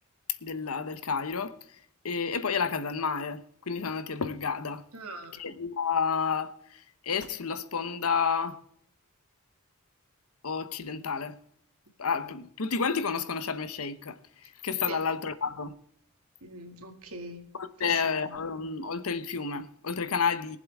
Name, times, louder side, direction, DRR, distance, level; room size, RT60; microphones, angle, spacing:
voice 1, 0.4-1.6 2.0-4.8 5.4-8.6 10.4-11.4 12.0-15.7 17.6-20.6, left 5 dB, 75° left, 0.9 m, -30 dB
voice 2, 4.9-5.4 14.9-15.0 16.4-17.5 17.8-18.4, right 2 dB, 75° right, 2.1 m, -43 dB
21.5 x 7.7 x 3.6 m
head